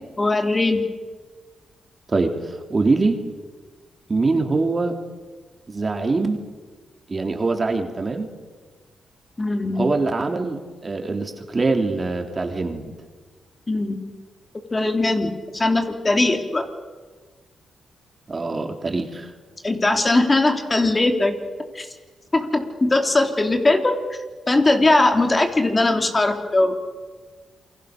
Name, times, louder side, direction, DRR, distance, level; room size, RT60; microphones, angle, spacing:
voice 1, 0.2-0.9 9.4-9.9 13.7-14.0 14.7-16.7 19.6-21.3 21.7-21.9 22.3-24.0 24.5-26.7, left 2 dB, 25° left, 5 dB, 3.3 m, -20 dB
voice 2, 2.1-3.2 4.1-5.0 5.7-6.4 7.1-8.3 9.7-12.8 18.3-19.3, right 3 dB, 35° right, 5 dB, 3.4 m, -23 dB
28.0 x 24.0 x 6.7 m, 1.4 s
cardioid pair, 70°, 0 cm